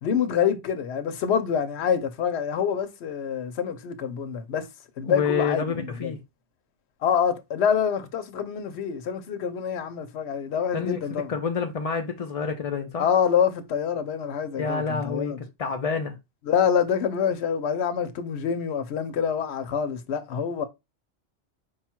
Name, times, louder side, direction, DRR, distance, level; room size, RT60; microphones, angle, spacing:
voice 1, 0.0-4.7 5.0-6.1 7.0-11.3 13.0-15.4 16.4-20.7, left 7 dB, 65° left, 0.9 m, -26 dB
voice 2, 5.1-6.2 10.7-13.1 14.6-16.2, left 5 dB, 50° left, 0.4 m, -28 dB
5.1 x 2.3 x 4.3 m
omnidirectional pair, 1.2 m